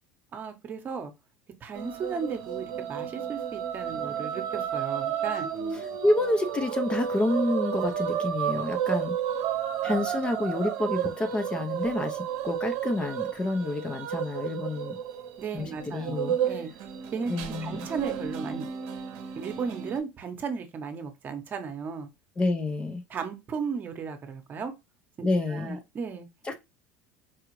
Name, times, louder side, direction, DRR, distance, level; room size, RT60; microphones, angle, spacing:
voice 1, 0.3-1.1 1.6-5.5 15.4-16.7 17.1-18.7 19.4-22.1 23.1-24.7 25.2-26.3, right 6 dB, 30° right, 0.9 m, -35 dB
sound 1, 1.7-20.0, right 9 dB, 60° right, 0.8 m, -32 dB
voice 2, 6.0-9.1 9.8-14.9 15.5-16.4 17.3-17.8 22.4-23.0 25.2-25.8 26.4-26.7, left 2 dB, 15° left, 0.5 m, -28 dB
4.7 x 2.4 x 3.0 m
supercardioid pair, 130°, 6 cm